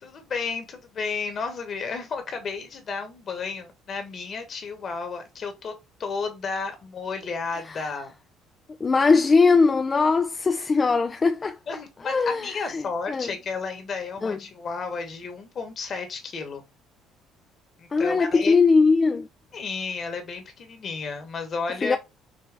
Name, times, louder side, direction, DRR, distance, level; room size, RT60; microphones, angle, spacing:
voice 1, 0.0-5.7 6.0-8.1 11.7-16.6 17.8-18.5 19.5-22.0, left 4 dB, 45° left, 1.4 m, -32 dB
voice 2, 8.8-11.6 12.0-13.3 14.2-14.4 17.9-19.3 21.8-22.0, left 4 dB, 25° left, 0.4 m, -21 dB
5.5 x 2.2 x 3.5 m
cardioid pair, 105°, 0 cm